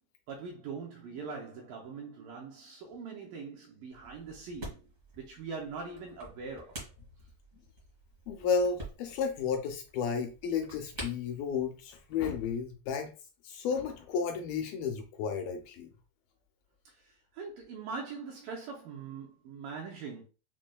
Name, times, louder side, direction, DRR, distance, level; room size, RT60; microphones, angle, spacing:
voice 1, 0.3-4.9 5.2-6.9 16.9-20.2, right 5 dB, 80° right, 2.0 m, -42 dB
sound 1, 3.9-12.6, right 2 dB, 60° right, 0.8 m, -49 dB
voice 2, 8.3-13.1 13.4-15.9, left 6 dB, 80° left, 2.1 m, -32 dB
6.2 x 2.2 x 2.2 m
omnidirectional pair, 4.4 m